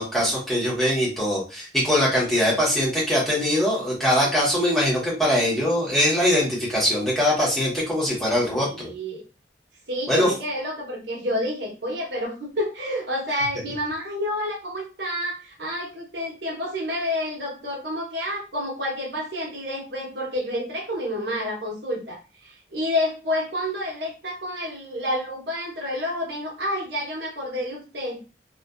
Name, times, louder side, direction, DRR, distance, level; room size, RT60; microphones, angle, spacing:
voice 1, 0.0-8.9 10.1-10.3, equal, ahead, -7 dB, 1.0 m, -22 dB
voice 2, 8.6-9.2 9.9-28.2, left 1 dB, 65° right, -1 dB, 0.8 m, -29 dB
2.5 x 2.3 x 2.2 m, 0.32 s
head